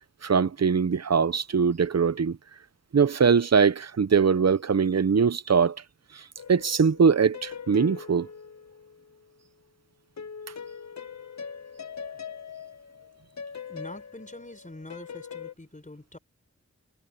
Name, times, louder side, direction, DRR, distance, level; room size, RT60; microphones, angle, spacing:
voice 1, 0.2-2.4 2.9-5.8 6.1-6.2 6.5-8.3, right 6 dB, 60° right, 0.8 m, -22 dB
sound 1, 6.4-9.3 10.2-15.5, left 6 dB, 70° left, 0.8 m, -41 dB
voice 2, 13.7-16.2, left 2 dB, 25° left, 4.7 m, -44 dB
wide cardioid pair, 55°, 29 cm